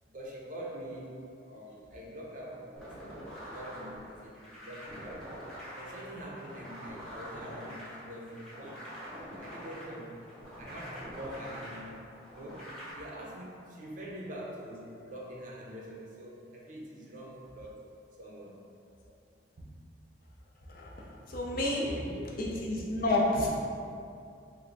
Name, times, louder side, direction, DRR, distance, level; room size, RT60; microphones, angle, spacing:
voice 1, 0.1-1.1 1.4-3.2 3.5-5.3 5.7-10.2 10.6-11.9 12.3-17.8 18.2-18.6 19.6-19.7 21.5-22.3, right 1 dB, 45° right, -3 dB, 0.6 m, -44 dB
sound 1, 2.8-12.9, equal, 5° left, 0.8 m, -45 dB
voice 2, 20.7-22.0 22.4-23.5, left 2 dB, 50° left, -3 dB, 0.5 m, -30 dB
3.3 x 2.2 x 3.9 m, 2.4 s
head